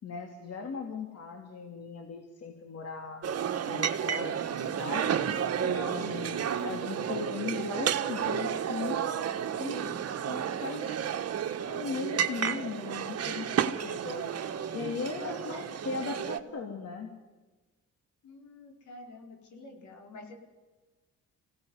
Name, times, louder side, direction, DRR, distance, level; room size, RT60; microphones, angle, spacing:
voice 1, 0.0-3.2 3.7-5.1 5.6-9.1 9.6-9.9 10.3-10.9 11.6-14.3 14.7-17.1, left 5 dB, 55° left, 3 dB, 3.1 m, -38 dB
sound 1, 3.2-16.4, right 8 dB, 55° right, 1.5 m, -32 dB
voice 2, 15.2-16.1 16.3-16.7 18.2-20.3, left 3 dB, 75° left, 3 dB, 5.2 m, -49 dB
25.5 x 17.5 x 9.8 m, 1.2 s
cardioid pair, 90°, 30 cm